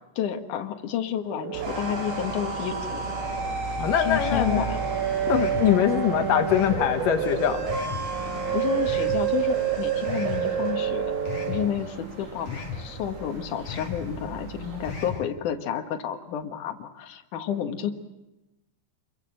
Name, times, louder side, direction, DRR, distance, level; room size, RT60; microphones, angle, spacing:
voice 1, 0.2-3.0 4.0-4.8 8.5-11.1 11.5-18.0, left 9 dB, 65° left, 5 dB, 2.2 m, -30 dB
sound 1, 1.2-11.7, right 7 dB, 75° right, 7.7 m, -29 dB
sound 2, 1.5-15.1, right 4 dB, 55° right, 6.5 m, -38 dB
voice 2, 3.8-4.7 5.3-7.6, left 10 dB, 80° left, 5 dB, 1.9 m, -23 dB
sound 3, 4.1-4.5 5.3-5.7 6.5-6.8 7.7-8.0 8.8-9.2 10.1-10.4 11.3-11.6 12.5-12.8 13.6-14.0 14.8-15.2, left 7 dB, 35° left, 6.3 m, -35 dB
29.0 x 22.5 x 7.6 m, 0.96 s
omnidirectional pair, 5.6 m